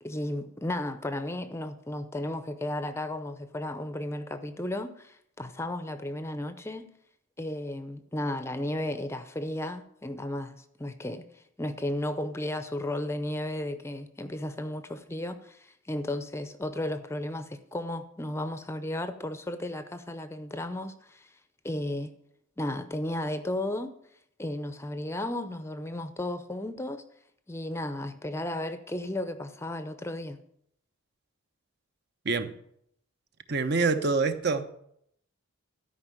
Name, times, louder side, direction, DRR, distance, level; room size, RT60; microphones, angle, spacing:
voice 1, 0.0-6.9 7.4-21.3 21.6-22.1 22.6-24.0 24.4-27.0 27.5-30.4, left 1 dB, 10° left, 0.6 m, -34 dB
voice 2, 33.5-34.7, right 4 dB, 50° right, 0.8 m, -26 dB
13.0 x 5.4 x 8.9 m
head